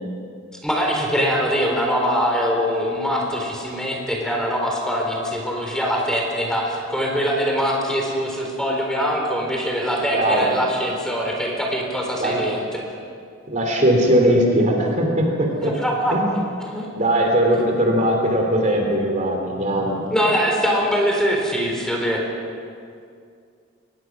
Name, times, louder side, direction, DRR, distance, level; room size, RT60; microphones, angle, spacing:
voice 1, 0.6-12.9 15.6-16.1 16.6-16.9 17.5-17.8 19.5-22.2, equal, 5° left, -1 dB, 3.9 m, -23 dB
voice 2, 10.1-10.6 12.2-12.4 13.5-15.7 16.1-16.3 16.9-20.0, right 1 dB, 40° right, 1 dB, 3.3 m, -19 dB
24.0 x 20.0 x 6.2 m, 2.3 s
head